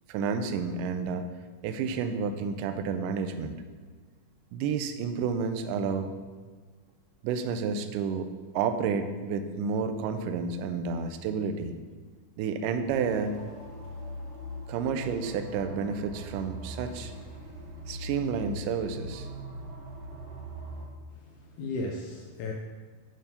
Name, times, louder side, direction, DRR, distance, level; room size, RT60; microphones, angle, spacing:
voice 1, 0.1-1.3 1.6-3.6 4.5-6.1 7.2-8.3 8.5-11.7 12.4-13.5 14.7-17.1 17.9-19.3, right 5 dB, 85° right, 8 dB, 2.1 m, -30 dB
sound 1, 12.8-20.8, equal, 60° right, 2.0 m, -41 dB
voice 2, 21.1-22.5, left 2 dB, 75° left, 0 dB, 2.0 m, -36 dB
9.1 x 3.5 x 5.6 m, 1.4 s
omnidirectional pair, 3.8 m